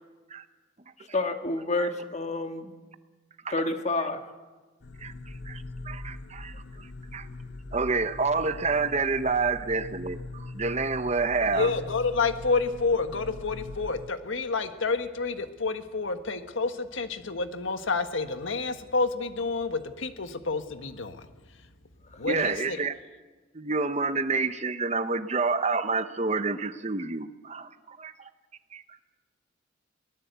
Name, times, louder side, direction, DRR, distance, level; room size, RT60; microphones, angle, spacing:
voice 1, 1.0-2.7 3.5-4.3, left 2 dB, 35° left, 7 dB, 1.7 m, -29 dB
sound 1, 4.8-14.1, left 2 dB, 55° left, 0.8 m, -42 dB
voice 2, 5.0-7.3 7.7-11.7 22.2-22.9 23.5-28.3 28.7-29.0, right 4 dB, 35° right, 11 dB, 0.9 m, -29 dB
voice 3, 11.5-21.3 22.2-22.8, left 4 dB, 75° left, 9 dB, 1.4 m, -29 dB
23.0 x 18.5 x 8.1 m, 1.3 s
head